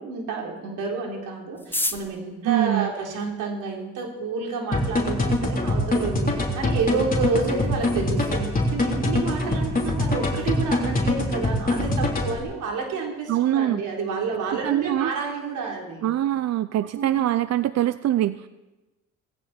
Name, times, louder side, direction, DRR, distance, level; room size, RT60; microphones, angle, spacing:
voice 1, 0.0-16.1 17.0-17.2, right 4 dB, 85° right, 0 dB, 3.8 m, -29 dB
sound 1, 1.5-3.8 4.6-4.7 4.9-5.0 5.3-5.8 6.1-6.2 6.4-6.8 7.1-7.3 7.6-7.9, left 2 dB, 5° left, 1.0 m, -32 dB
voice 2, 2.4-2.9 13.3-13.8 14.6-15.1 16.0-18.5, right 12 dB, 60° right, 14 dB, 0.5 m, -23 dB
sound 2, 4.7-12.4, left 1 dB, 30° left, 3.7 m, -24 dB
18.5 x 16.0 x 4.4 m, 1.1 s
cardioid pair, 90°, 30 cm